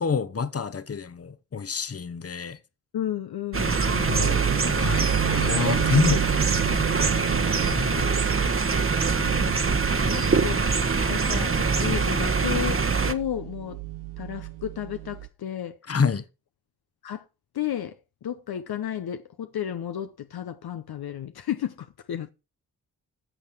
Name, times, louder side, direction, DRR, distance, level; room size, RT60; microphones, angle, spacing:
voice 1, 0.0-2.6 4.1-4.5 4.8-6.9 9.2-9.6 15.9-16.2, left 5 dB, 35° left, 1.1 m, -28 dB
voice 2, 2.9-4.2 7.7-8.4 9.4-9.5 10.1-10.7 11.1-12.8 13.1-13.8 14.2-15.9 17.0-17.2 17.5-18.0 18.2-22.3, left 10 dB, 60° left, 0.8 m, -33 dB
sound 1, 3.5-13.1, right 4 dB, 30° right, 1.2 m, -23 dB
sound 2, 4.1-15.3, right 15 dB, 75° right, 0.9 m, -33 dB
11.0 x 6.7 x 4.6 m
supercardioid pair, 40°, 42 cm